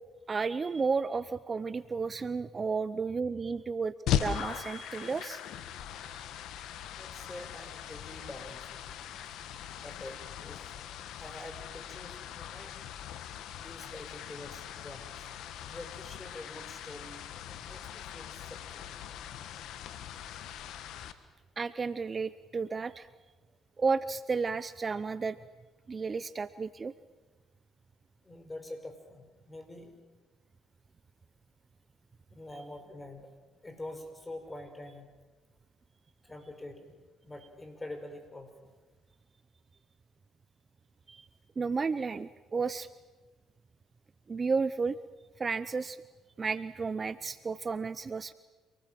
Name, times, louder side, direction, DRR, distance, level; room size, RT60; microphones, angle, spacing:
voice 1, 0.3-3.9 4.2-5.4 6.1-6.2 21.6-23.1 23.8-25.4 25.9-26.9 41.1-41.2 41.6-42.9 44.3-45.0 45.4-46.0 46.4-48.3, right 4 dB, 35° right, 16 dB, 0.7 m, -32 dB
sound 1, 4.1-21.1, left 10 dB, 70° left, 1.4 m, -39 dB
voice 2, 7.0-8.6 9.8-10.6 11.1-12.7 13.6-15.3 15.7-18.9 20.9-21.1 28.2-30.0 32.3-33.3 33.6-35.1 36.2-37.0 37.2-38.7, left 1 dB, 20° left, 6 dB, 5.5 m, -46 dB
27.0 x 19.5 x 7.6 m, 1.3 s
hypercardioid pair, 55°, 0 cm